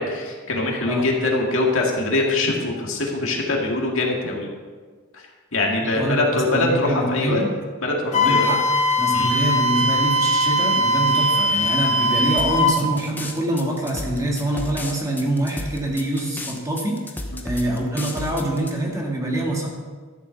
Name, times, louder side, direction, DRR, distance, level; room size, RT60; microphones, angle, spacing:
voice 1, 0.0-4.5 5.1-5.2 5.5-7.4 7.8-8.5 9.1-9.3 17.3-17.4, left 2 dB, 60° left, -1 dB, 2.1 m, -23 dB
voice 2, 5.8-7.5 8.1-8.6 9.0-17.1 17.4-19.7, right 1 dB, 15° right, -2 dB, 1.8 m, -25 dB
Wind instrument woodwind instrument, 8.1-12.8, left 1 dB, 35° left, 1.1 m, -20 dB
sound 1, 12.4-18.7, left 1 dB, 10° left, 0.9 m, -33 dB
12.5 x 7.4 x 5.7 m, 1.5 s
head